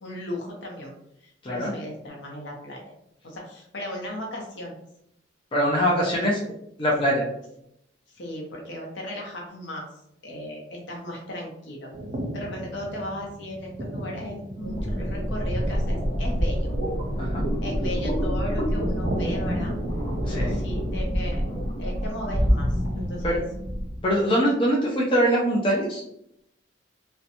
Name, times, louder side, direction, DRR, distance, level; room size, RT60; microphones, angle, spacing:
voice 1, 0.0-0.9 1.2-3.0 3.2-4.8 6.2-6.3 6.8-6.9 8.1-9.9 10.2-11.9 12.3-16.7 17.6-19.7 20.3-21.5 21.8-23.5, left 1 dB, 70° left, -1 dB, 0.7 m, -36 dB
voice 2, 5.5-6.4 6.8-7.3 17.2-17.4 20.3-20.6 23.2-23.4 24.0-26.0, equal, 25° left, -4 dB, 0.5 m, -23 dB
sound 1, 11.9-21.6, right 1 dB, 35° right, 0.4 m, -37 dB
sound 2, 14.6-24.0, equal, 50° left, 1.1 m, -27 dB
2.8 x 2.2 x 2.5 m, 0.77 s
head